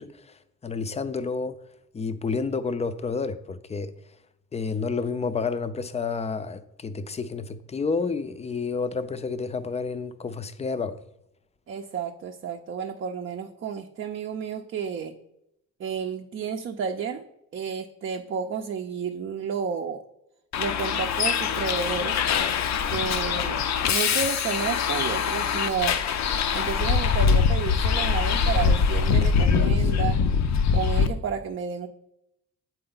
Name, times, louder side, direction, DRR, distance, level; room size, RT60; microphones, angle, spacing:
voice 1, 0.0-1.6 1.9-3.9 4.5-11.0, left 4 dB, 20° left, 0.5 m, -30 dB
voice 2, 11.7-15.1 15.8-17.2 17.5-20.0 20.6-22.2 22.9-23.6 23.9-26.0 26.5-30.2 30.7-31.9, right 6 dB, 45° right, 0.6 m, -31 dB
Bus, 20.5-31.1, left 6 dB, 65° left, 0.6 m, -23 dB
7.7 x 4.3 x 3.9 m
cardioid pair, 90°, 30 cm